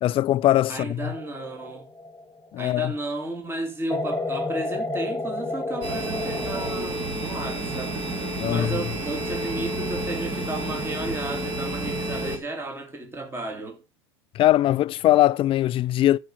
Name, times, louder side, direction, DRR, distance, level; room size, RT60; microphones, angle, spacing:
voice 1, 0.0-1.1 2.5-2.9 8.4-8.7 14.3-16.2, left 14 dB, 35° left, 0.5 m, -21 dB
voice 2, 0.7-1.9 2.6-8.0 8.4-13.8, right 2 dB, 15° right, 2.6 m, -33 dB
sound 1, 1.0-2.8 3.9-6.7, left 2 dB, 15° left, 1.5 m, -31 dB
sound 2, 5.8-12.4, right 1 dB, 30° right, 3.1 m, -30 dB
12.5 x 5.1 x 6.0 m
hypercardioid pair, 95°, 15 cm